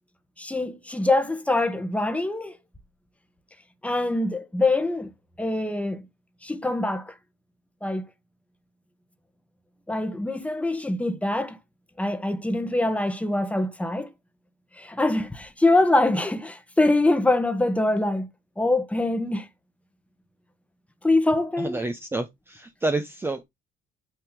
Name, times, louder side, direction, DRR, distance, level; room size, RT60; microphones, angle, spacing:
voice 1, 0.4-2.5 3.8-5.1 5.4-6.0 6.4-7.1 7.8-8.0 9.9-11.6 12.0-14.1 14.8-18.3 18.6-19.5 21.0-21.9, left 2 dB, 10° left, 1.1 m, -24 dB
voice 2, 21.6-23.4, right 2 dB, 15° right, 0.7 m, -29 dB
8.6 x 3.0 x 3.8 m
cardioid pair, 110°, 17 cm